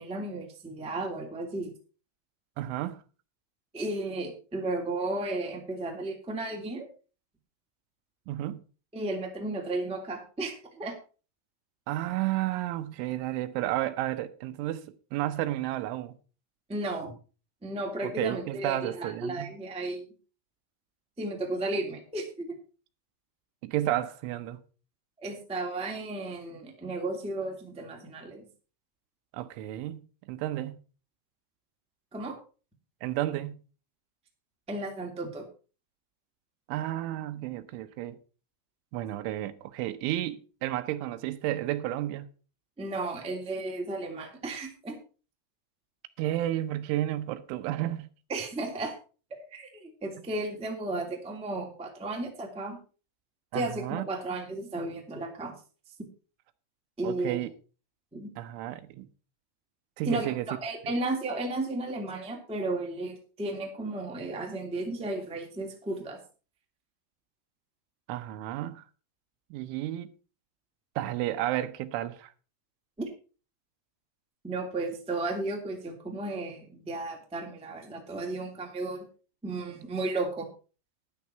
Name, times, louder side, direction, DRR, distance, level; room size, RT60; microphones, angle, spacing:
voice 1, 0.0-1.7 3.7-6.9 8.9-10.9 16.7-17.1 17.6-20.0 21.2-22.5 25.2-28.5 32.1-32.4 34.7-35.5 42.8-45.0 48.3-48.9 49.3-52.8 53.5-55.5 57.0-57.4 58.1-58.3 60.0-66.2 73.0-73.1 74.4-79.0 79.4-80.5, right 2 dB, 5° right, 1.0 m, -34 dB
voice 2, 2.6-3.0 8.3-8.6 11.9-16.1 18.0-19.5 23.6-24.6 29.3-30.8 33.0-33.6 36.7-38.2 38.9-42.3 46.2-48.1 53.5-54.1 57.0-57.5 58.4-59.1 60.0-60.5 60.8-60.9 68.1-68.8 69.5-70.1 71.0-72.3, right 14 dB, 85° right, 3.3 m, -32 dB
12.0 x 10.5 x 4.4 m
omnidirectional pair, 5.5 m